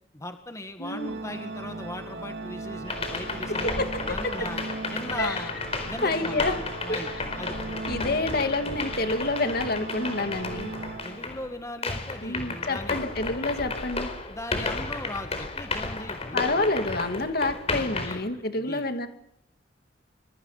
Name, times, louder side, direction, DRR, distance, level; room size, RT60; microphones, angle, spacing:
voice 1, 0.1-4.6 4.9-5.6 5.8-6.5 6.8-7.1 7.4-7.6 11.0-13.0 14.3-16.7 18.0-18.9, left 1 dB, 15° left, 7 dB, 1.9 m, -39 dB
voice 2, 0.8-1.1 3.5-3.9 5.2-5.4 6.0-6.5 6.9-7.0 7.9-10.7 12.2-14.1 16.3-19.1, left 2 dB, 55° left, 7 dB, 2.4 m, -28 dB
Organ, 0.8-11.7, right 2 dB, 60° right, 2.9 m, -38 dB
sound 1, 2.8-11.5 11.8-18.2, left 3 dB, 35° left, 4.5 m, -33 dB
25.0 x 24.0 x 5.8 m, 0.78 s
head